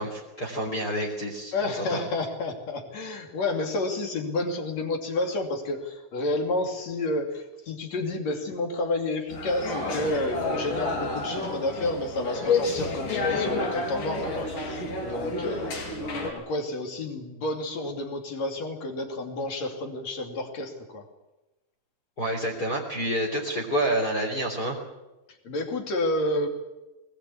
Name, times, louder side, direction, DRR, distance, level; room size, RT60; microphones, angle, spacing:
voice 1, 0.0-2.0 22.2-24.8, right 1 dB, 30° left, 2 dB, 3.5 m, -28 dB
voice 2, 1.5-21.1 25.4-26.5, left 2 dB, 50° left, 4 dB, 3.6 m, -30 dB
sound 1, 9.3-16.3, left 3 dB, 70° left, 6.4 m, -29 dB
21.5 x 19.5 x 8.6 m, 1.1 s
omnidirectional pair, 4.0 m